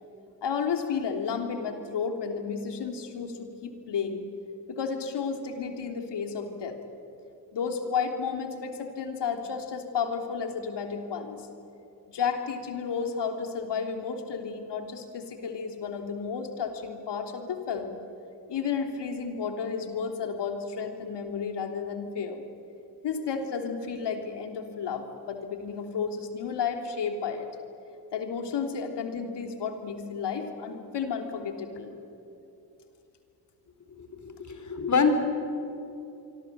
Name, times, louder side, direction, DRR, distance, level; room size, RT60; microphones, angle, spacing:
voice 1, 0.4-4.2 4.7-6.8 7.5-11.4 12.1-18.0 18.5-22.4 23.0-27.5 28.1-31.9, left 6 dB, 55° left, 5 dB, 3.5 m, -32 dB
voice 2, 34.0-35.1, left 5 dB, 35° left, 7 dB, 4.3 m, -26 dB
26.0 x 24.5 x 7.7 m, 2.8 s
hypercardioid pair, 55°, 49 cm